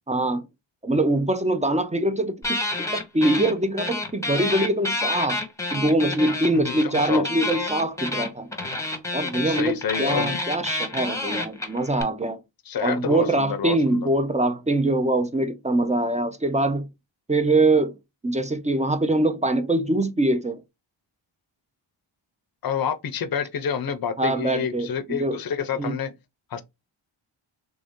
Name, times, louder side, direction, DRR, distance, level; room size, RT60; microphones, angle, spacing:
voice 1, 0.1-0.5 0.8-5.4 5.7-8.5 9.1-12.4 12.8-16.9 17.3-17.9 18.2-20.6 24.2-25.4 25.7-26.0, right 2 dB, 15° right, 0.4 m, -23 dB
sound 1, 2.4-3.5 3.8-12.0, left 2 dB, 5° left, 0.8 m, -28 dB
voice 2, 6.5-7.3 9.5-10.4 12.7-14.1 22.6-26.1 26.5-26.6, left 7 dB, 45° left, 0.5 m, -28 dB
3.5 x 2.6 x 3.5 m
wide cardioid pair, 130°, 49 cm